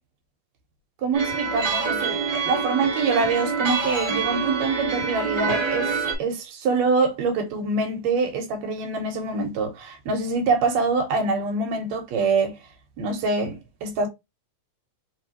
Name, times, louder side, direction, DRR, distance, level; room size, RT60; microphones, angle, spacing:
voice 1, 1.0-12.6 13.0-14.1, right 4 dB, 70° right, 2.2 m, -25 dB
sound 1, 1.1-6.1, right 5 dB, 45° right, 2.0 m, -26 dB
4.5 x 3.5 x 2.8 m
omnidirectional pair, 3.3 m